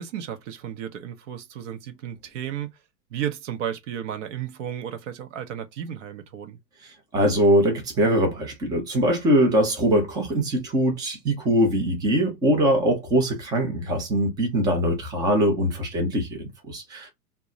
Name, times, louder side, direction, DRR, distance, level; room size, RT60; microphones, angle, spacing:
voice 1, 0.0-2.7 3.1-6.6, right 9 dB, 50° right, 0.7 m, -33 dB
voice 2, 6.8-17.1, equal, 10° right, 0.5 m, -22 dB
2.2 x 2.0 x 3.7 m
hypercardioid pair, 120°, 49 cm